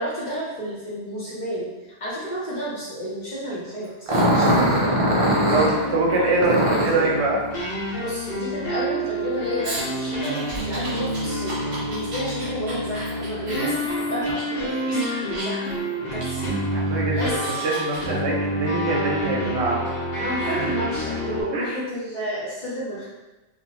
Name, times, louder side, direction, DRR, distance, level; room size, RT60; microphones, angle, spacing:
voice 1, 0.0-1.7 2.0-7.1 8.0-15.7 16.1-16.6 17.2-17.6 18.8-19.6 20.2-23.0, equal, 45° left, -8 dB, 0.7 m, -31 dB
Growling, 4.1-5.7 6.4-7.0 9.6-14.4 14.9-15.7 16.2-16.3 17.0-18.0, equal, 50° right, 0.4 m, -24 dB
sound 1, 4.5-21.4, equal, 65° left, 1.1 m, -28 dB
voice 2, 5.5-7.4 13.6-13.7 16.7-19.8 20.5-20.7 21.5-21.7, right 2 dB, 70° right, -3 dB, 0.8 m, -24 dB
2.5 x 2.1 x 2.8 m, 1.1 s
omnidirectional pair, 1.2 m